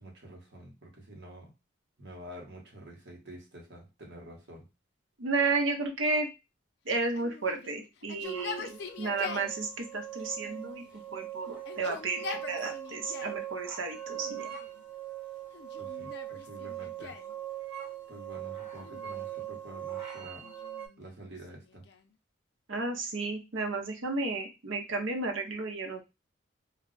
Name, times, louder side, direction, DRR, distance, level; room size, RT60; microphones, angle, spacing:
voice 1, 0.0-1.5 2.0-4.7 15.8-17.2 18.1-20.5 21.0-21.8, right 1 dB, 65° right, 0 dB, 1.0 m, -48 dB
voice 2, 5.2-6.3 6.9-10.8 11.1-14.5 22.7-26.0, right 3 dB, 85° right, 4 dB, 0.7 m, -32 dB
Yell, 7.2-9.5 10.4-11.2 11.6-13.4 14.2-14.8 15.5-17.3 18.7-19.6 20.4-22.1, left 5 dB, 60° left, 0.4 m, -44 dB
sound 1, 8.2-20.9, right 12 dB, 5° right, 0.9 m, -41 dB
2.3 x 2.0 x 3.8 m, 0.25 s
head